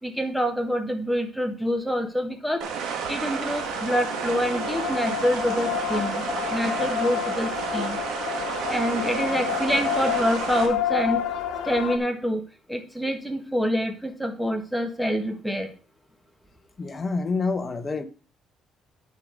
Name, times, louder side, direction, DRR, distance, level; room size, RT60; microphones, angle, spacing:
voice 1, 0.0-2.6 3.1-8.0 8.7-11.2 11.6-12.4 12.7-15.7, equal, ahead, 1.5 m, -26 dB
sound 1, 2.6-10.7, right 6 dB, 85° right, 1.9 m, -31 dB
sound 2, 3.4-12.0, left 10 dB, 75° left, 1.3 m, -30 dB
voice 2, 16.8-18.0, left 3 dB, 25° left, 1.0 m, -27 dB
9.2 x 6.5 x 5.1 m
cardioid pair, 125°, 0 cm